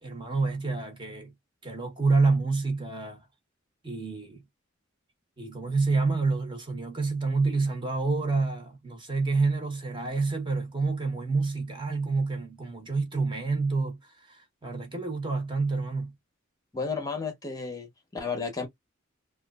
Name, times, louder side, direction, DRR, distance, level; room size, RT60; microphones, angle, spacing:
voice 1, 0.0-1.3 1.6-3.2 3.8-4.4 5.4-16.1, right 3 dB, 25° right, 0.8 m, -28 dB
voice 2, 16.7-18.7, left 4 dB, 20° left, 0.8 m, -33 dB
2.9 x 2.3 x 2.2 m
head